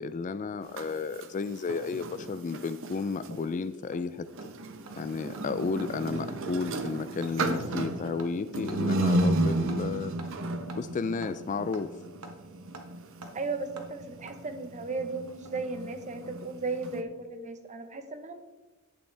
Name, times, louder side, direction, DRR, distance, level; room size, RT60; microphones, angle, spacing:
voice 1, 0.0-4.3 5.0-10.1 10.7-11.9, left 4 dB, 35° left, 13 dB, 0.3 m, -32 dB
sound 1, 0.6-3.4 4.3-17.0, right 2 dB, 60° right, 0.8 m, -33 dB
Hammer, 2.5-2.6 3.0-3.1 3.4-3.5 3.9-4.0 4.4-4.5 4.9-5.0 5.3-5.4 5.8-5.9 6.3-6.4 6.7-6.9 7.2-7.3 7.7-7.9 8.2-8.3 8.7-8.8 9.2-9.3 9.7-9.8 10.2-10.3 10.7-10.8 11.2-11.3 11.7-11.8 12.2-12.3 12.7-12.9 13.2-13.3 13.8-13.9 14.3-14.4 15.3-15.7 15.9-16.0, right 2 dB, 80° right, 1.3 m, -45 dB
voice 2, 13.3-18.4, right 3 dB, 35° right, 8 dB, 0.9 m, -35 dB
11.5 x 9.0 x 3.3 m, 1.1 s
head